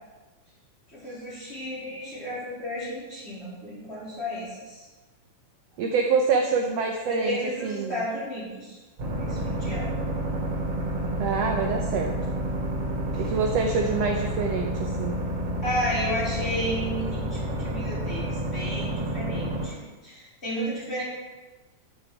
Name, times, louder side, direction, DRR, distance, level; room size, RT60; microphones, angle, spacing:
voice 1, 0.9-4.9 7.1-8.8 9.1-9.9 13.1-13.4 15.6-21.0, equal, 20° left, -8 dB, 3.8 m, -33 dB
voice 2, 5.8-7.4 7.6-8.0 11.2-12.1 13.2-15.2, right 5 dB, 75° right, 3 dB, 1.5 m, -26 dB
sound 1, 9.0-19.7, right 1 dB, 50° right, 3.8 m, -29 dB
10.5 x 8.9 x 4.8 m, 1.2 s
omnidirectional pair, 3.8 m